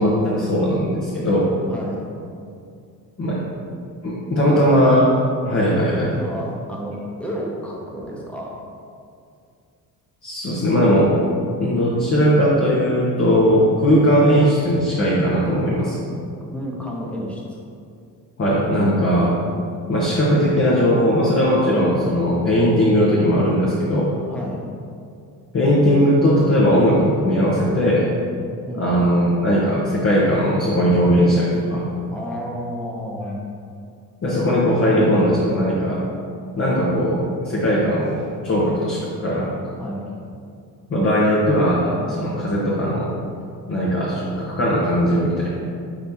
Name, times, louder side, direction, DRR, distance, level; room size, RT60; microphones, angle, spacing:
voice 1, 0.0-1.5 3.2-3.4 4.0-5.1 5.4-6.1 10.2-11.1 11.6-16.1 18.4-19.4 19.9-24.1 25.5-28.1 28.7-31.8 34.2-36.0 36.6-39.5 40.9-43.1 43.7-45.5, equal, 30° left, -5 dB, 1.2 m, -18 dB
voice 2, 1.7-2.1 4.3-4.6 6.1-8.6 16.5-17.4 24.3-24.6 28.7-29.2 32.1-33.4 39.8-40.1, equal, ahead, -3 dB, 1.2 m, -31 dB
9.9 x 3.4 x 2.9 m, 2.4 s
figure-of-eight pair, 50°, 50 cm